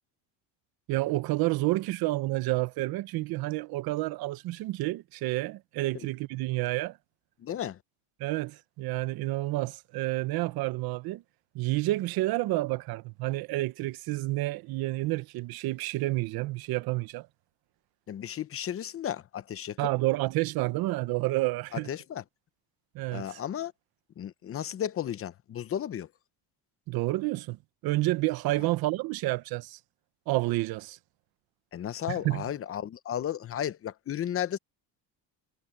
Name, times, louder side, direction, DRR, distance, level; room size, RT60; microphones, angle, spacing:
voice 1, 0.9-7.0 8.2-11.2 11.5-17.3 19.8-21.9 22.9-23.4 26.9-27.6 27.8-29.8 30.3-31.0 32.1-32.4, right 19 dB, 65° right, 1.0 m, -29 dB
voice 2, 7.4-7.8 18.1-19.8 21.7-22.2 23.1-23.7 24.2-26.1 31.7-34.6, left 10 dB, 35° left, 0.9 m, -34 dB
cardioid pair, 135°, 39 cm